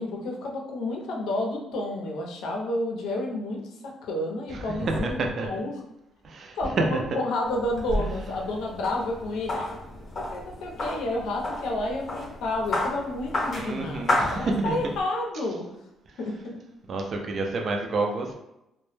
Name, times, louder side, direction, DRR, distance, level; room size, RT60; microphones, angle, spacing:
voice 1, 0.0-5.8 6.6-9.8 10.2-15.7 16.2-16.6, left 1 dB, 80° left, 0 dB, 0.5 m, -30 dB
voice 2, 4.5-5.5 6.2-6.7 13.6-14.8 16.9-18.3, right 3 dB, 45° right, 2 dB, 0.3 m, -29 dB
sound 1, 7.4-15.0, left 1 dB, 35° left, 0.7 m, -32 dB
2.1 x 2.0 x 3.0 m, 0.87 s
cardioid pair, 145°, 0 cm